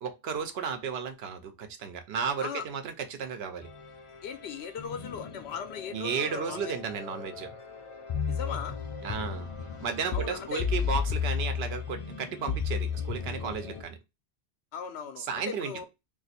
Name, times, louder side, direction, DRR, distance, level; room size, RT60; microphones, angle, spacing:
voice 1, 0.0-3.7 5.9-7.5 9.0-9.5 9.8-14.0 15.3-15.9, right 6 dB, 75° right, 8 dB, 0.8 m, -34 dB
sound 1, 3.6-13.8, left 6 dB, 50° left, 0.3 m, -34 dB
voice 2, 4.2-6.7 8.3-8.8 10.1-10.7 14.7-15.9, left 7 dB, 85° left, 8 dB, 0.9 m, -38 dB
2.5 x 2.5 x 4.0 m, 0.24 s
omnidirectional pair, 1.1 m